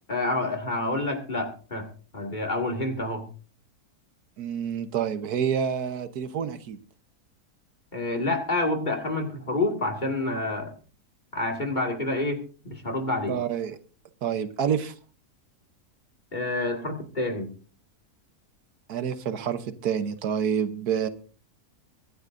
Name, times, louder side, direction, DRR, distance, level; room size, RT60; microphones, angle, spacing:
voice 1, 0.1-1.9 2.1-3.3 7.9-10.7 11.3-13.4 16.3-17.5, left 2 dB, 30° left, 2 dB, 2.2 m, -28 dB
voice 2, 4.4-6.8 13.3-13.8 14.2-14.9 18.9-21.1, right 8 dB, 75° right, 10 dB, 1.5 m, -28 dB
24.0 x 11.0 x 2.6 m, 0.38 s
omnidirectional pair, 1.7 m